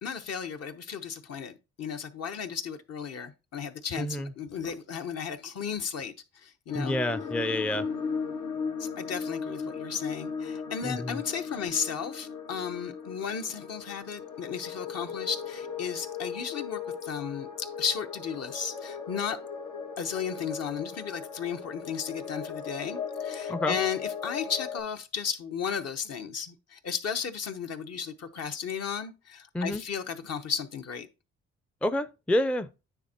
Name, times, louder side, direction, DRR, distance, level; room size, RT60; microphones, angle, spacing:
voice 1, 0.0-7.0 8.8-19.4 20.0-31.1, left 7 dB, 55° left, 1.0 m, -34 dB
voice 2, 4.0-4.3 6.8-7.9 10.8-11.2 23.5-23.8 29.5-29.8 31.8-32.7, left 1 dB, 5° left, 0.4 m, -28 dB
sound 1, 6.7-24.8, left 6 dB, 85° left, 2.8 m, -37 dB
9.5 x 3.6 x 4.3 m
cardioid pair, 90°, 30 cm